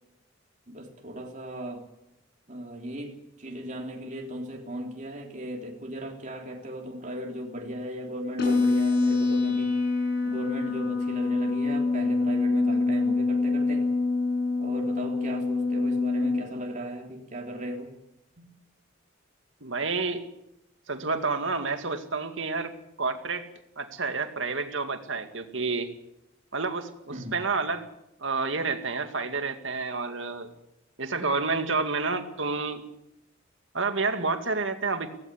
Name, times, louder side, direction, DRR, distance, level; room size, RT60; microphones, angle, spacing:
voice 1, 0.7-1.8 2.5-9.8 10.2-13.9 14.6-17.9 18.4-18.5 27.1-27.3, right 1 dB, 40° right, 1 dB, 3.4 m, -37 dB
sound 1, 8.4-16.4, left 3 dB, 55° left, 6.7 m, -25 dB
voice 2, 19.6-20.2 20.9-22.7 23.0-23.5 23.8-25.9 26.5-27.9 28.2-30.5 31.0-32.8 33.7-35.1, right 4 dB, 70° right, 7 dB, 2.2 m, -29 dB
17.0 x 16.0 x 10.0 m, 0.83 s
head